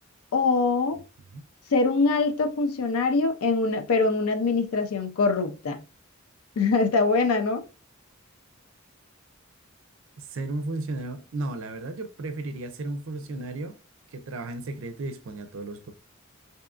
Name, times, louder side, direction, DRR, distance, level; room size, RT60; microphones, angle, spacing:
voice 1, 0.3-1.0 1.7-5.8 6.6-7.6, left 3 dB, 90° left, 0.4 m, -23 dB
voice 2, 10.2-13.7 14.1-15.9, right 2 dB, 65° right, 0.4 m, -34 dB
2.7 x 2.4 x 2.3 m
head